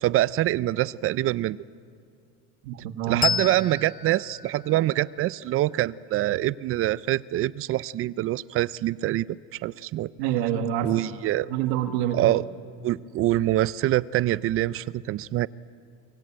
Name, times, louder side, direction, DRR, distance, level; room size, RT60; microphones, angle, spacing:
voice 1, 0.0-1.6 3.1-10.1 10.8-11.5 12.1-12.4 12.8-15.5, right 15 dB, 45° right, 20 dB, 0.6 m, -25 dB
voice 2, 2.6-3.3 10.2-10.9 11.5-12.3, right 10 dB, 85° right, 7 dB, 2.2 m, -26 dB
Bell, 3.2-6.3, left 7 dB, 30° left, 1.1 m, -33 dB
24.5 x 24.0 x 9.0 m, 2.3 s
cardioid pair, 130°, 30 cm